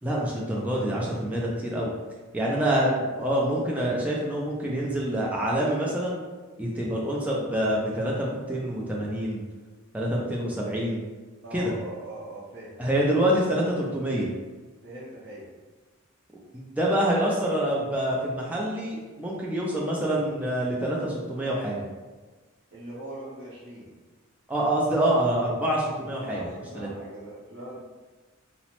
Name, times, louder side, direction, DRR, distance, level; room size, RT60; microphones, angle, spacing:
voice 1, 0.0-1.9 2.3-6.2 6.6-9.4 9.9-11.0 11.5-11.7 12.8-14.3 16.5-21.8 24.5-26.5 26.8-26.9, right 1 dB, 5° right, -4 dB, 0.3 m, -26 dB
voice 2, 11.4-12.8 14.8-15.5 22.7-23.9 26.1-27.8, right 1 dB, 60° right, -9 dB, 0.6 m, -41 dB
2.9 x 2.0 x 2.9 m, 1.3 s
head